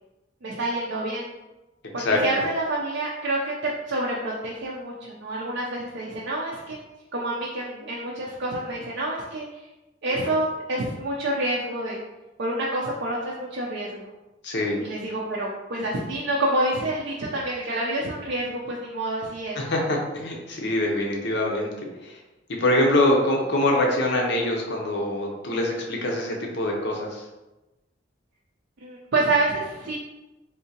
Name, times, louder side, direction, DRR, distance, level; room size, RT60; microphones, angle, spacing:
voice 1, 0.4-1.3 1.9-6.8 7.1-9.6 10.0-12.0 12.4-14.1 14.8-19.6 28.8-30.0, right 1 dB, 65° right, -4 dB, 0.5 m, -28 dB
voice 2, 14.4-14.8 19.5-21.7 22.0-22.2 22.6-27.2, left 1 dB, 65° left, 0 dB, 0.7 m, -24 dB
3.5 x 2.7 x 2.8 m, 1.0 s
head